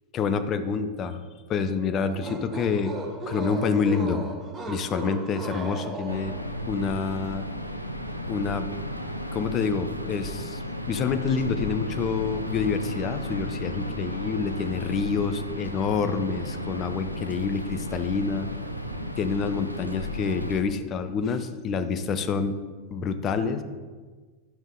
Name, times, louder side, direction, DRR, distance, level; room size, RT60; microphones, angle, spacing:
voice 1, 0.1-1.2 1.5-2.9 3.3-4.2 4.7-6.3 6.7-7.5 8.3-8.7 9.3-10.6 10.9-18.5 19.2-22.6 22.9-23.6, left 5 dB, 30° left, 9 dB, 0.6 m, -27 dB
sound 1, 2.0-6.5, right 2 dB, 20° right, 1.0 m, -36 dB
sound 2, 6.1-20.6, equal, 90° right, 0.5 m, -34 dB
10.5 x 5.4 x 3.7 m, 1.4 s
figure-of-eight pair, 90°, 0 cm